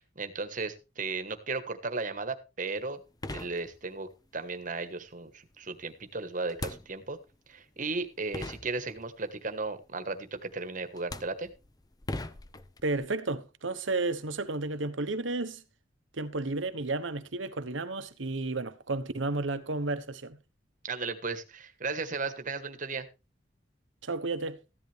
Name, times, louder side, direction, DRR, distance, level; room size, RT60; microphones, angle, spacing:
voice 1, 0.0-3.0 3.3-7.2 7.5-11.5 20.8-23.1, right 3 dB, 45° right, 1.4 m, -35 dB
sound 1, 2.8-2.9 3.2-4.1 6.5-7.4 8.0-8.1 8.3-9.3 10.4-10.6 10.9-13.1, left 2 dB, 20° left, 0.6 m, -40 dB
voice 2, 12.8-15.6 16.2-20.4 24.0-24.6, right 2 dB, 85° right, 1.2 m, -32 dB
14.5 x 11.0 x 3.4 m
head